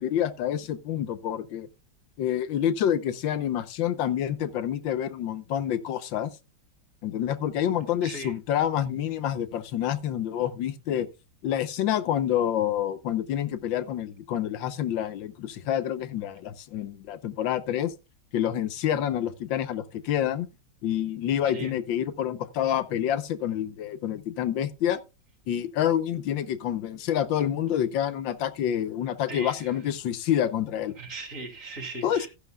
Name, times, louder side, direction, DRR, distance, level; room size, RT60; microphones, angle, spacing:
voice 1, 0.0-1.7 2.2-6.3 7.0-11.1 11.4-17.9 18.3-20.5 20.8-25.0 25.5-30.9 32.0-32.3, left 10 dB, 85° left, 1.5 m, -28 dB
voice 2, 8.0-8.3 21.4-21.7 29.3-29.8 31.0-32.3, right 2 dB, 40° right, 3.2 m, -38 dB
14.0 x 11.0 x 2.3 m
omnidirectional pair, 2.0 m